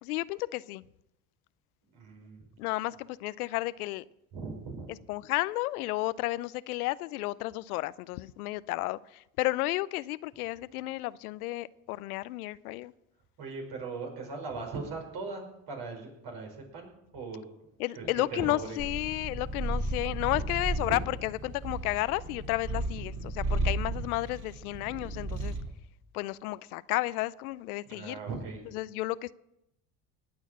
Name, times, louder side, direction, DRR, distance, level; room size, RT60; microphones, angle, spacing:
voice 1, 0.0-0.8 2.6-4.1 5.1-12.9 17.8-25.6 26.1-28.2 28.7-29.3, left 18 dB, 85° left, 19 dB, 0.6 m, -32 dB
voice 2, 1.9-2.4 4.3-4.9 13.4-17.4 17.9-18.8 20.3-20.4 20.9-21.0 27.8-28.6, right 4 dB, 60° right, 2 dB, 5.4 m, -39 dB
Purr, 18.8-25.7, right 2 dB, 35° right, 3.5 m, -34 dB
19.0 x 6.3 x 8.6 m, 0.84 s
hypercardioid pair, 70°, 43 cm